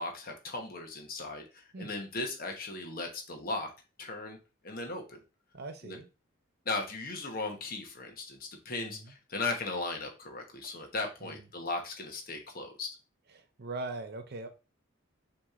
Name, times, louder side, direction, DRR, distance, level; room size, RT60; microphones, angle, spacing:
voice 1, 0.0-3.7 4.0-4.4 4.6-5.2 5.8-6.0 6.6-13.0, left 3 dB, 45° left, 1.0 m, -37 dB
voice 2, 5.5-6.1 8.8-8.9 13.6-14.5, right 3 dB, 50° right, 0.6 m, -39 dB
5.9 x 3.0 x 2.4 m
head